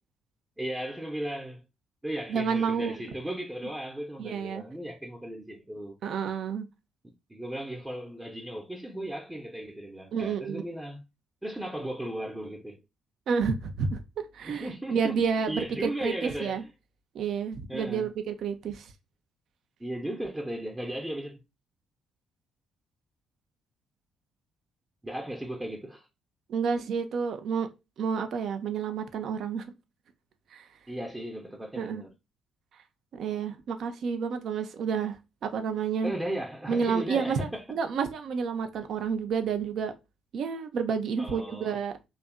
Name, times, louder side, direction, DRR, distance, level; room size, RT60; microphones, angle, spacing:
voice 1, 0.6-1.6 2.0-5.9 7.3-11.0 11.4-12.8 14.5-15.1 15.5-16.7 17.7-18.1 19.8-21.4 25.0-26.1 30.9-32.1 36.0-37.6 41.2-41.8, right 1 dB, 15° right, 0.6 m, -36 dB
voice 2, 2.3-3.0 4.2-4.6 6.0-6.7 10.1-10.6 13.3-16.6 17.1-18.9 26.5-27.7 28.0-29.7 30.5-30.7 31.8-32.0 33.1-36.1 36.7-39.9 40.3-42.1, right 6 dB, 60° right, 0.4 m, -30 dB
2.7 x 2.4 x 2.2 m
hypercardioid pair, 45°, 0 cm